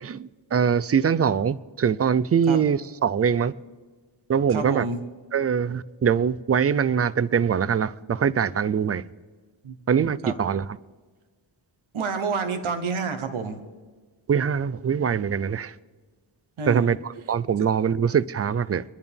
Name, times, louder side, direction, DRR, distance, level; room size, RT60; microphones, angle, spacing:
voice 1, 0.0-3.5 4.3-4.9 5.3-9.0 9.9-10.6 14.3-15.7 16.7-18.8, right 7 dB, 35° right, 0.4 m, -23 dB
voice 2, 4.5-5.0 9.6-9.7 10.2-10.3 11.9-13.6 16.6-17.0, right 5 dB, 80° right, 1.2 m, -28 dB
23.0 x 11.0 x 3.5 m
wide cardioid pair, 95°, 48 cm